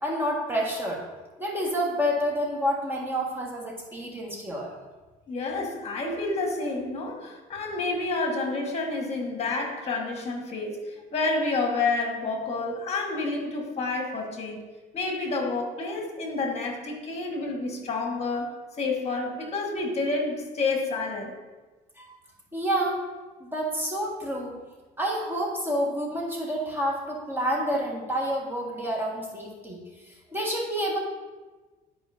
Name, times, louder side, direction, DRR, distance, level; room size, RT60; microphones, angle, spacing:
voice 1, 0.0-1.0 1.4-4.7 22.0-22.2 22.5-23.0 23.4-24.5 25.0-29.8 30.3-31.0, equal, 15° right, -3 dB, 1.6 m, -28 dB
voice 2, 5.3-14.6 14.9-21.3, left 3 dB, 40° left, 1 dB, 1.7 m, -29 dB
11.0 x 5.0 x 2.7 m, 1.2 s
cardioid pair, 110°, 17 cm